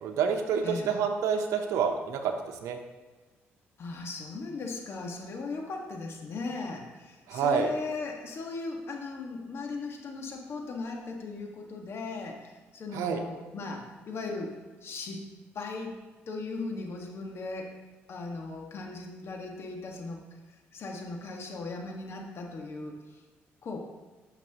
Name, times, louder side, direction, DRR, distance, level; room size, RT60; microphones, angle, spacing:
voice 1, 0.0-2.8 7.3-7.7 12.9-13.2, right 6 dB, 80° right, 4 dB, 0.9 m, -28 dB
voice 2, 0.6-1.0 3.8-14.5 14.8-15.2 15.5-16.0 16.3-17.7 18.1-20.2 20.7-23.2 23.6-23.8, left 3 dB, 55° left, 1 dB, 1.7 m, -38 dB
12.0 x 5.8 x 3.0 m, 1.3 s
supercardioid pair, 70°, 5 cm